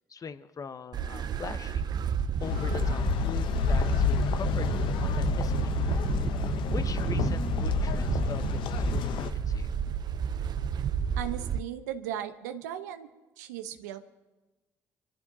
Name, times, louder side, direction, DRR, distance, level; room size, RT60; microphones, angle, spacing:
voice 1, 0.1-1.9 2.4-5.7 6.7-9.7, left 5 dB, 40° left, 11 dB, 1.0 m, -41 dB
sound 1, 0.9-11.6, right 7 dB, 50° right, 0.7 m, -31 dB
sound 2, 2.4-9.3, left 9 dB, 65° left, 0.9 m, -29 dB
voice 2, 11.2-13.1 13.4-14.1, right 11 dB, 85° right, 8 dB, 0.9 m, -37 dB
26.5 x 14.5 x 2.9 m, 1.2 s
hypercardioid pair, 50°, 9 cm